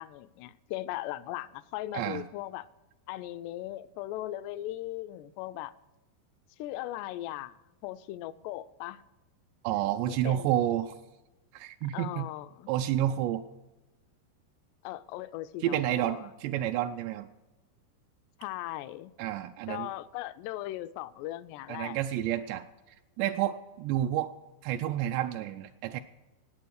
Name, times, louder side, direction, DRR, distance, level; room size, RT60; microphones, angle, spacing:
voice 1, 0.0-2.7 3.1-5.7 6.6-9.0 10.1-10.6 11.9-12.7 14.8-16.3 18.4-19.1 19.7-22.3, left 15 dB, 85° left, 2.6 m, -38 dB
voice 2, 9.6-10.9 11.5-12.3 12.7-13.4 15.6-17.3 19.2-19.9 21.7-22.6 23.2-24.3 24.6-26.0, right 12 dB, 85° right, 2.8 m, -30 dB
18.0 x 8.6 x 6.5 m
omnidirectional pair, 4.9 m